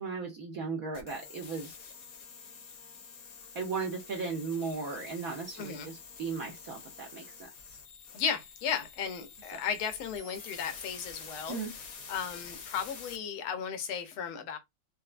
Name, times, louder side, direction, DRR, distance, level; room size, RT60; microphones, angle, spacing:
voice 1, 0.0-1.9 3.5-7.8 9.5-9.6 11.5-11.7, right 4 dB, 65° right, 0.9 m, -37 dB
sound 1, 0.9-13.2, left 5 dB, 60° left, 0.9 m, -48 dB
voice 2, 8.1-11.6 12.1-14.6, left 7 dB, 85° left, 1.6 m, -35 dB
4.3 x 2.1 x 2.4 m
omnidirectional pair, 2.3 m